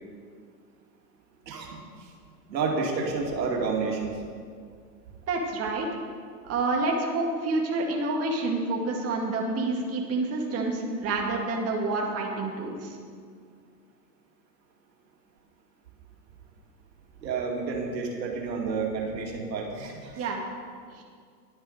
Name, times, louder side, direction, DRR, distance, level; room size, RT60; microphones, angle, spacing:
voice 1, 1.5-1.8 2.5-4.1 17.2-20.3, right 4 dB, 85° right, 0 dB, 2.5 m, -30 dB
voice 2, 5.3-5.9 6.4-13.0 20.2-20.4 21.0-21.1, right 3 dB, 30° right, -1 dB, 2.2 m, -28 dB
11.5 x 9.2 x 6.5 m, 2.1 s
hypercardioid pair, 115°, 49 cm